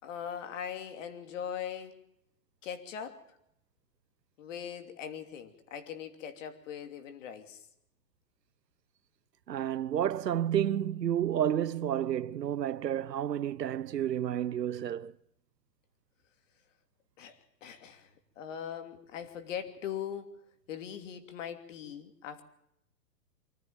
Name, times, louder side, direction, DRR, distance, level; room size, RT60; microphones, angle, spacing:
voice 1, 0.0-1.9 2.6-3.2 4.4-7.6 17.2-18.1 18.4-20.4 20.7-22.4, left 8 dB, 50° left, 3.0 m, -40 dB
voice 2, 9.5-15.1, right 10 dB, 80° right, 1.1 m, -30 dB
24.5 x 14.0 x 8.8 m
hypercardioid pair, 140°, 48 cm